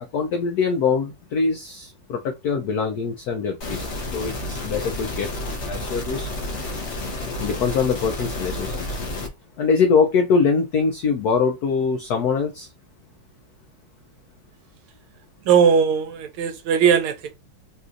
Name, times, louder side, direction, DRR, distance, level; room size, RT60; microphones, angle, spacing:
voice 1, 0.1-5.3 5.7-6.3 7.4-9.0 9.6-12.7, left 5 dB, 85° left, 0.8 m, -23 dB
sound 1, 3.6-9.3, left 2 dB, 45° left, 1.1 m, -30 dB
voice 2, 15.5-17.3, right 7 dB, 90° right, 1.5 m, -19 dB
4.2 x 2.5 x 2.5 m
omnidirectional pair, 2.3 m